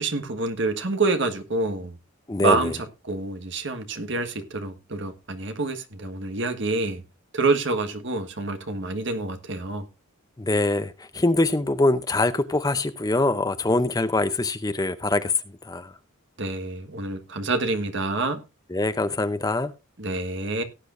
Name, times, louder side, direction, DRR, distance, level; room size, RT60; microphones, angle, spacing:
voice 1, 0.0-1.9 2.4-2.8 3.0-7.0 7.3-9.9 16.4-18.4 20.0-20.6, right 3 dB, 60° right, 1.5 m, -27 dB
voice 2, 2.3-2.7 10.4-15.3 15.6-15.9 18.7-19.7, left 2 dB, 20° left, 0.6 m, -23 dB
18.0 x 8.4 x 2.6 m
head